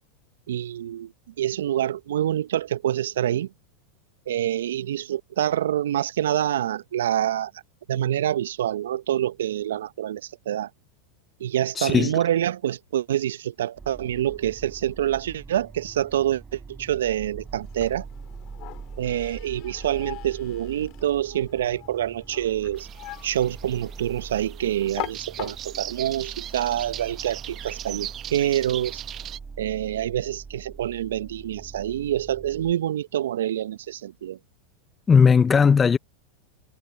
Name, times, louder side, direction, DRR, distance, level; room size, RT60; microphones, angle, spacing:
voice 1, 0.5-1.1 1.4-3.5 4.3-7.5 7.9-10.7 11.4-18.1 19.0-22.9 23.2-29.0 29.6-34.4, right 11 dB, 75° right, 0.9 m, -26 dB
voice 2, 11.8-12.2 35.1-36.0, left 6 dB, 20° left, 0.6 m, -17 dB
sound 1, 13.7-32.7, right 4 dB, 20° right, 5.4 m, -43 dB
sound 2, 17.4-26.0, left 21 dB, 50° left, 4.7 m, -42 dB
sound 3, 22.8-29.4, right 11 dB, 35° right, 0.9 m, -39 dB
hypercardioid pair, 90°, 0 cm